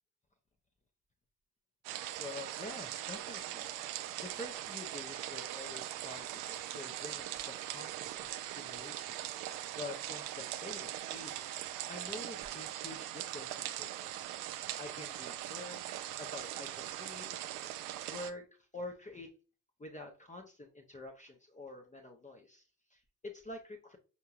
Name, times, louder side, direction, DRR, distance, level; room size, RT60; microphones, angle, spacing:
sound 1, 1.8-18.3, right 13 dB, 50° right, 0.5 m, -41 dB
voice 1, 2.2-9.2 9.5-11.5 11.9-14.3 14.8-15.8 16.2-17.5 18.1-19.3 19.8-24.0, left 2 dB, 15° left, 2 dB, 0.7 m, -48 dB
5.5 x 2.9 x 2.5 m, 0.34 s
figure-of-eight pair, 40°, 44 cm